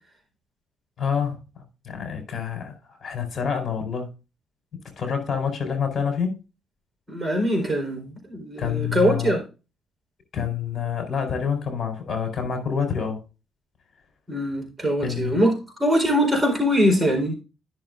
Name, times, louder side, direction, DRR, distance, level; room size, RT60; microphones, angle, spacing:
voice 1, 1.0-4.1 5.0-6.3 8.6-9.3 10.3-13.2 15.0-15.4, left 7 dB, 45° left, 4.5 m, -27 dB
voice 2, 7.1-9.4 14.3-15.5 15.8-17.3, equal, 15° right, 4.3 m, -22 dB
14.0 x 6.8 x 2.6 m
cardioid pair, 90°, 0 cm